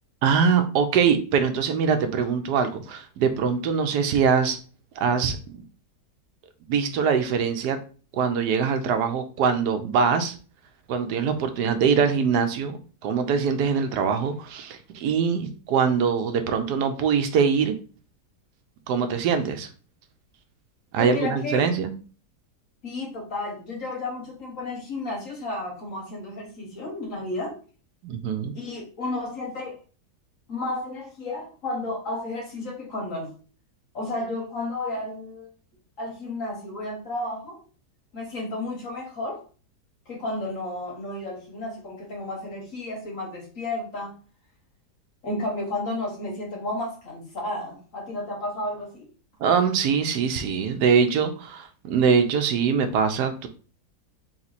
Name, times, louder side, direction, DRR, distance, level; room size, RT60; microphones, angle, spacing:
voice 1, 0.2-4.6 5.0-5.4 6.7-7.8 8.1-10.4 10.9-12.8 13.0-17.8 18.9-19.7 20.9-21.9 28.0-28.5 49.4-53.5, right 6 dB, 85° right, 8 dB, 1.2 m, -23 dB
voice 2, 21.0-21.7 22.8-27.5 28.5-29.8 30.5-33.3 33.9-35.5 36.0-37.6 38.1-39.4 40.1-44.1 45.2-49.1, left 2 dB, 55° left, -1 dB, 1.7 m, -32 dB
3.6 x 3.0 x 4.0 m, 0.37 s
omnidirectional pair, 1.7 m